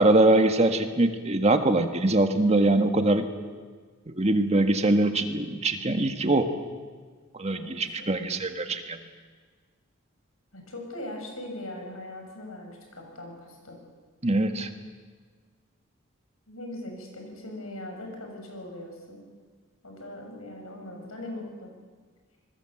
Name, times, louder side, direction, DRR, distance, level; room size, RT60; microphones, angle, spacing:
voice 1, 0.0-3.3 4.1-6.5 7.3-9.0 14.2-14.7, right 2 dB, 30° right, 6 dB, 1.6 m, -23 dB
voice 2, 7.5-8.1 10.5-13.8 16.5-19.2 19.8-21.7, left 1 dB, 85° left, 2 dB, 6.9 m, -40 dB
26.5 x 21.0 x 7.8 m, 1.5 s
head